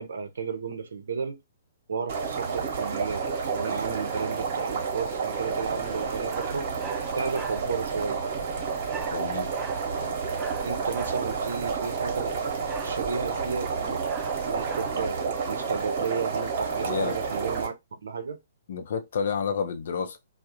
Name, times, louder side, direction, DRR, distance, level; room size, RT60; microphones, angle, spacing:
voice 1, 0.0-1.4 1.9-6.7 7.2-8.2 10.6-12.4 12.8-14.0 14.5-17.7 18.0-18.4, right 5 dB, 70° right, 0.5 m, -33 dB
sound 1, 2.1-17.7, right 5 dB, 45° right, 0.9 m, -30 dB
sound 2, 5.6-15.1, right 6 dB, 15° right, 0.4 m, -43 dB
voice 2, 9.1-9.5 16.8-17.2 18.7-20.2, left 6 dB, 60° left, 0.5 m, -30 dB
2.3 x 2.0 x 2.8 m
figure-of-eight pair, 125°, 0 cm